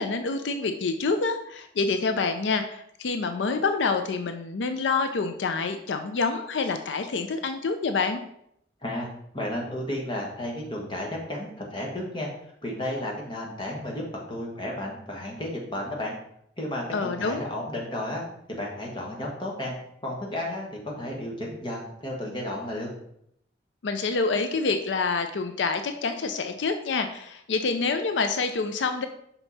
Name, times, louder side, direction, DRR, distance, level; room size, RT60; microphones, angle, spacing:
voice 1, 0.0-8.2 16.9-17.5 23.8-29.1, left 4 dB, 85° left, 8 dB, 0.5 m, -27 dB
voice 2, 9.3-12.3 12.6-14.0 14.3-16.1 16.6-18.2 18.5-19.7 20.0-22.9, left 1 dB, 25° left, -2 dB, 1.4 m, -33 dB
5.8 x 5.3 x 4.1 m, 0.73 s
head